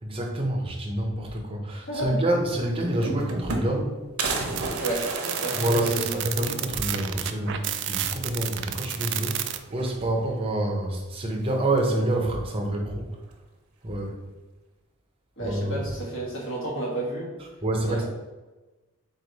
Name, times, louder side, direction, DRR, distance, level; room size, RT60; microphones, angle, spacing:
voice 1, 0.0-4.1 5.6-13.1 13.8-14.2 15.4-15.9 17.6-18.1, right 1 dB, 25° right, 0 dB, 0.7 m, -27 dB
voice 2, 1.9-2.2 4.8-6.2 15.4-17.3 17.8-18.1, right 1 dB, 60° left, -3 dB, 1.5 m, -31 dB
sound 1, 2.2-2.3 2.6-3.9 4.2-6.8 7.2-7.3 7.6-7.7 8.8-9.3 9.6-10.4 11.4-12.0, right 3 dB, 85° right, 0.7 m, -33 dB
sound 2, 4.5-9.6, right 12 dB, 55° right, 0.3 m, -30 dB
4.2 x 3.1 x 4.0 m, 1.2 s
head